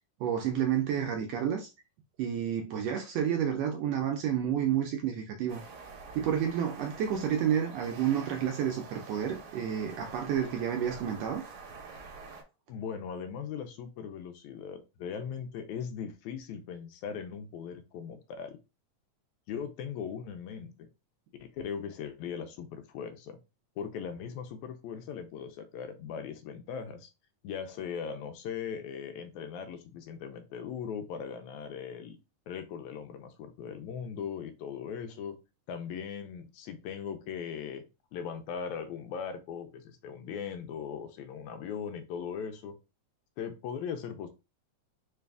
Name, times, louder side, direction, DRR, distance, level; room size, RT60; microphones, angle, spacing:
voice 1, 0.2-1.7 2.2-5.6 6.1-11.4, right 9 dB, 80° right, 1.5 m, -30 dB
sound 1, 5.5-12.4, right 4 dB, 65° right, 1.4 m, -47 dB
voice 2, 12.7-18.6 19.5-20.9 21.4-23.4 23.8-27.1 27.4-32.2 32.5-35.4 35.7-37.8 38.1-42.8 43.4-44.3, left 7 dB, 85° left, 1.9 m, -39 dB
4.6 x 2.4 x 3.4 m
omnidirectional pair, 3.4 m